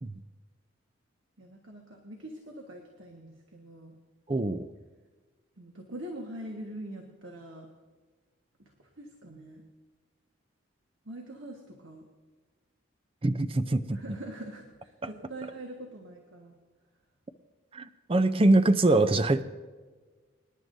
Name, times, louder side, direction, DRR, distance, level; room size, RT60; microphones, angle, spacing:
voice 1, 1.4-4.0 5.6-7.7 8.6-9.6 11.0-12.1 13.9-16.5, right 1 dB, 70° right, 1 dB, 1.5 m, -43 dB
voice 2, 4.3-4.7 13.2-14.0 17.7-19.4, right 2 dB, 25° right, 11 dB, 0.5 m, -24 dB
25.0 x 11.0 x 2.7 m, 1.4 s
head